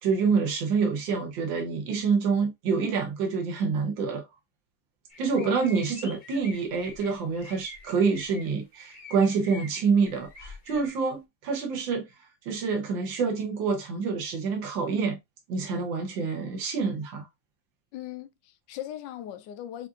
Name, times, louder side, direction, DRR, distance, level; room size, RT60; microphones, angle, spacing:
voice 1, 0.0-4.2 5.2-12.1 12.4-15.2 15.5-17.3, right 5 dB, 80° right, 1.7 m, -27 dB
sound 1, 5.1-8.5 8.9-10.9, left 3 dB, 45° left, 0.6 m, -46 dB
voice 2, 17.9-19.9, left 11 dB, 80° left, 1.2 m, -38 dB
6.4 x 2.5 x 2.4 m
omnidirectional pair, 2.0 m